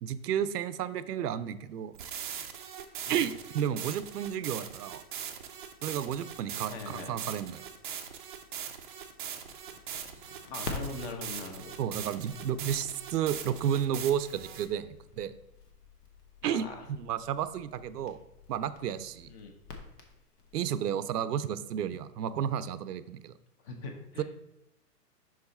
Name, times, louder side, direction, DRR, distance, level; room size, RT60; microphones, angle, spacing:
voice 1, 0.0-1.9 3.1-5.0 5.8-7.6 11.8-14.9 15.1-15.3 16.4-18.2 18.5-19.3 20.5-23.3 24.2-24.3, right 9 dB, 80° right, 14 dB, 0.6 m, -32 dB
sound 1, 1.9-14.7, right 8 dB, 35° right, 0.4 m, -41 dB
voice 2, 6.7-7.1 10.5-11.7 16.4-16.8 19.3-19.5 23.6-24.2, left 3 dB, 35° left, 4 dB, 1.1 m, -41 dB
Crackle, 9.4-20.6, left 3 dB, 80° left, 1.4 m, -48 dB
5.9 x 4.8 x 4.1 m, 0.88 s
hypercardioid pair, 145°, 47 cm